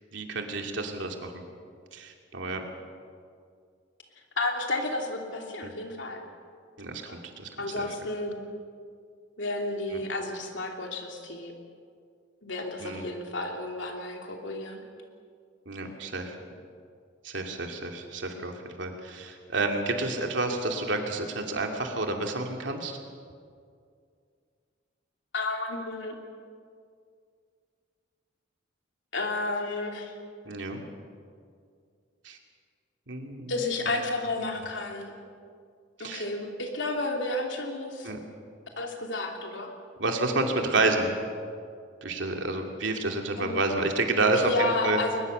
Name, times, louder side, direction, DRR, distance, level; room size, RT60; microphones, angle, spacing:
voice 1, 0.1-1.3 1.9-2.6 5.6-5.7 6.8-7.1 7.4-7.5 7.8-7.9 9.9-10.0 12.8-13.1 15.7-16.3 17.2-23.0 30.4-30.8 32.2-32.4 33.1-33.6 36.0-36.3 38.0-38.2 40.0-41.1 42.0-45.0, right 2 dB, 80° right, 3 dB, 2.7 m, -29 dB
voice 2, 4.4-6.2 7.1-7.2 7.6-8.4 9.4-11.5 12.4-14.8 25.3-26.2 29.1-30.1 33.5-35.1 36.0-38.2 38.8-39.7 43.4-43.6 44.3-45.2, left 2 dB, 80° left, 2 dB, 2.9 m, -31 dB
21.5 x 20.5 x 6.8 m, 2.2 s
head